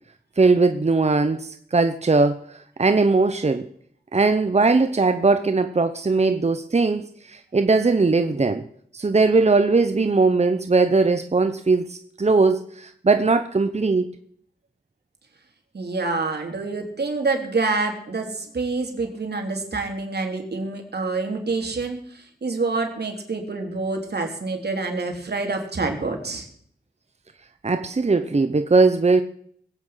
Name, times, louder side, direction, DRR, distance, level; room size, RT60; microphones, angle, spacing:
voice 1, 0.4-3.7 4.1-8.7 8.9-14.1 27.6-29.2, right 3 dB, 40° right, 9 dB, 0.9 m, -20 dB
voice 2, 15.7-26.5, right 3 dB, 80° right, 3 dB, 3.2 m, -27 dB
21.0 x 8.8 x 5.7 m, 0.63 s
wide cardioid pair, 65°, 17 cm